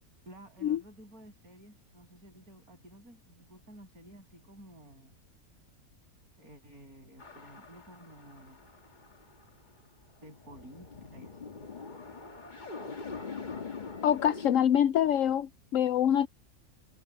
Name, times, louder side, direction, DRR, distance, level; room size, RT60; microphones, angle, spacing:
voice 1, 0.2-5.1 6.4-8.7 10.2-11.5, right 1 dB, 85° right, 8.4 m, -53 dB
sound 1, 7.2-9.7 10.2-14.5, left 4 dB, 35° left, 1.6 m, -43 dB
voice 2, 14.0-16.3, left 9 dB, 70° left, 0.9 m, -25 dB
omnidirectional pair, 1.5 m